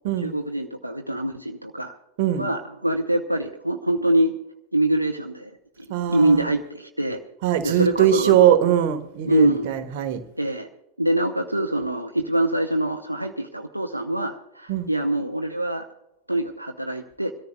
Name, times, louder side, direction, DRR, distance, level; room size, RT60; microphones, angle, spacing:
voice 1, 0.2-2.0 2.4-4.4 4.7-5.5 5.8-7.2 7.6-8.6 9.2-9.7 10.4-10.7 11.0-15.9 16.3-17.3, right 1 dB, 85° right, 0.7 m, -24 dB
voice 2, 5.9-6.5 7.4-10.2 14.7-14.9, right 11 dB, 50° right, 1.3 m, -21 dB
25.5 x 13.5 x 2.3 m
figure-of-eight pair, 90°, 0 cm